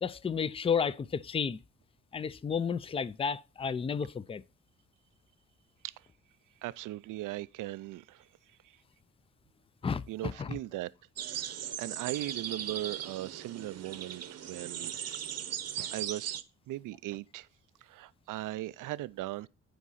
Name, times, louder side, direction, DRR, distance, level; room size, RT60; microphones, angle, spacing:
voice 1, 0.0-1.6 2.1-4.4 9.8-10.6, left 6 dB, 20° left, 0.4 m, -32 dB
voice 2, 6.6-8.3 8.6-8.8 10.1-10.9 11.2-15.2 15.8-16.4 16.7-17.5 17.8-19.5, right 16 dB, 85° right, 0.5 m, -39 dB
sound 1, 11.2-16.4, right 9 dB, 55° right, 0.8 m, -38 dB
10.0 x 4.7 x 4.1 m
cardioid pair, 100°, 31 cm